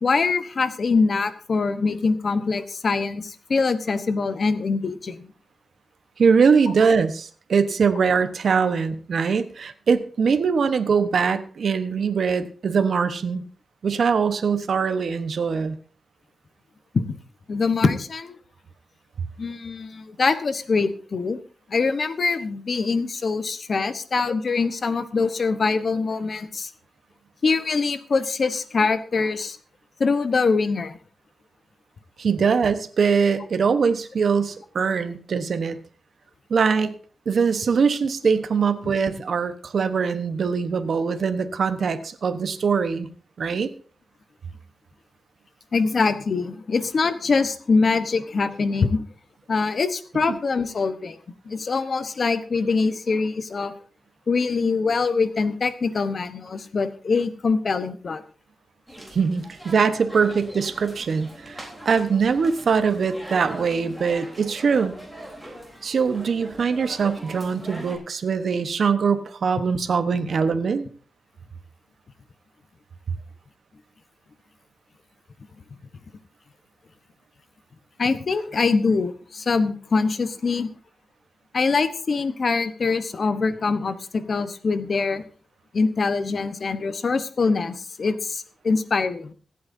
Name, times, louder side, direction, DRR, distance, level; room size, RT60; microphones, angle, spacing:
voice 1, 0.0-5.3 16.9-17.0 17.5-18.4 19.4-21.4 21.7-26.7 27.4-29.6 30.0-31.0 45.7-49.0 49.5-51.2 51.4-53.7 54.3-58.2 78.0-80.7 81.5-85.2 85.7-89.3, left 4 dB, 45° left, 11 dB, 1.0 m, -23 dB
voice 2, 6.2-13.4 13.8-15.8 32.2-35.8 36.5-36.9 37.3-43.1 43.4-43.7 59.1-64.9 65.8-70.9, right 5 dB, 60° right, 10 dB, 1.0 m, -22 dB
sound 1, 58.9-68.0, right 1 dB, ahead, 3.6 m, -41 dB
25.5 x 8.7 x 2.7 m, 0.43 s
wide cardioid pair, 150°, 0 cm